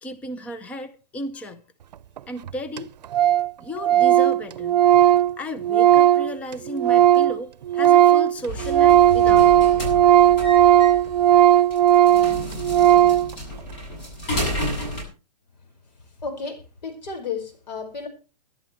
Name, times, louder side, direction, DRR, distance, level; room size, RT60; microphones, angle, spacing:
voice 1, 0.0-1.6 2.3-2.9 3.6-4.8 5.4-9.7, equal, 5° left, 0.6 m, -34 dB
Organ, 2.2-2.3 2.5-2.6 2.8-2.9 3.1-3.5 3.8-7.4 7.7-13.3, right 12 dB, 80° right, 0.6 m, -16 dB
sound 1, 8.5-15.0, left 1 dB, 35° left, 7.7 m, -31 dB
voice 2, 16.2-18.1, left 5 dB, 85° left, 5.3 m, -32 dB
22.0 x 11.5 x 3.2 m
hypercardioid pair, 160°, 21 cm